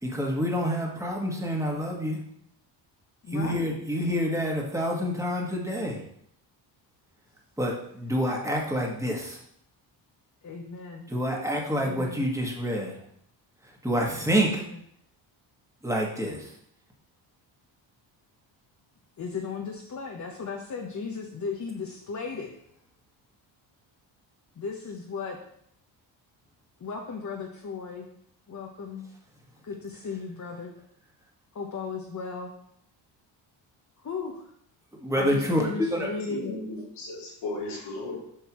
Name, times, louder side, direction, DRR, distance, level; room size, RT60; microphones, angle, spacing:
voice 1, 0.0-2.2 3.3-6.0 7.6-9.4 11.1-13.0 13.6-14.7 15.8-16.5 34.9-36.1, equal, 5° right, -1 dB, 1.8 m, -28 dB
voice 2, 3.2-3.7 10.4-11.1 11.8-12.3 14.3-14.6 19.2-22.5 24.5-25.4 26.8-28.1 28.5-29.1 29.6-30.7 31.5-32.5 34.0-34.4 35.1-36.5, left 5 dB, 40° left, 0 dB, 1.1 m, -36 dB
voice 3, 36.1-38.2, left 2 dB, 90° left, -5 dB, 2.8 m, -35 dB
8.2 x 5.4 x 3.1 m, 0.70 s
cardioid pair, 85°, 46 cm